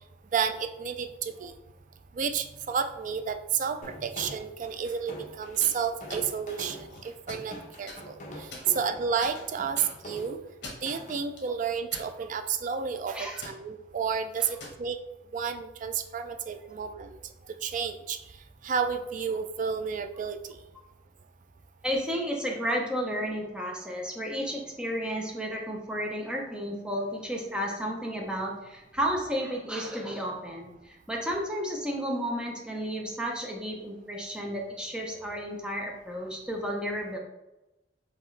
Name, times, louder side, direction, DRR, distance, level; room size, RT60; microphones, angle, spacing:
voice 1, 0.3-1.5 2.1-10.4 10.8-15.0 15.3-17.2 17.6-18.2 18.6-20.4, right 6 dB, 45° right, 8 dB, 0.3 m, -31 dB
sound 1, 3.8-11.2, equal, 45° left, 0.9 m, -44 dB
sound 2, 5.5-5.8 6.1-6.2 6.8-7.5 7.9-8.0 8.5-8.9 9.2-9.3 9.8-9.9 10.5-10.9 11.4-11.5 11.9-12.4 12.8-13.0 13.4-13.6 14.4-14.8, left 2 dB, 65° left, 1.2 m, -42 dB
voice 2, 21.8-37.2, equal, 5° right, -1 dB, 0.7 m, -32 dB
4.6 x 3.0 x 3.2 m, 0.98 s
head